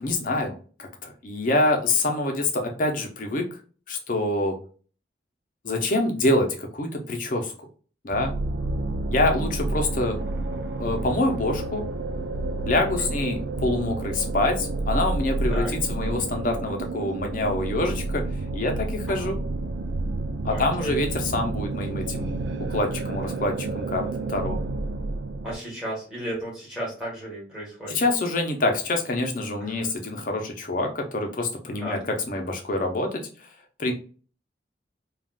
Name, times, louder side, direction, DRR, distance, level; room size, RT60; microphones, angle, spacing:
voice 1, 0.0-3.4 3.9-4.6 5.6-7.5 8.0-8.3 9.1-10.2 10.8-11.8 12.7-18.2 18.5-19.4 20.4-22.3 22.7-24.6 27.9-33.5 33.8-33.9, left 2 dB, 45° left, 3 dB, 0.6 m, -26 dB
sound 1, 8.1-25.5, right 2 dB, 70° right, 0.3 m, -30 dB
voice 2, 12.9-13.2 15.5-15.7 19.1-19.3 20.5-21.1 25.4-28.0 29.6-29.9 31.8-32.0, right 1 dB, 5° right, -5 dB, 1.5 m, -34 dB
3.5 x 2.4 x 2.4 m, 0.39 s
head